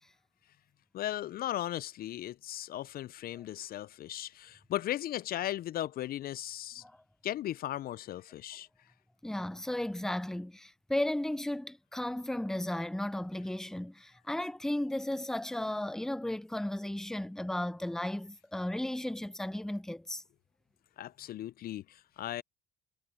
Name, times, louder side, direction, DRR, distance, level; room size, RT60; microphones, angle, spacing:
voice 1, 0.9-6.8 7.2-8.7 21.0-22.4, left 13 dB, 55° left, 0.4 m, -37 dB
voice 2, 9.2-20.2, left 1 dB, 5° left, 0.6 m, -35 dB
supercardioid pair, 65°, 18 cm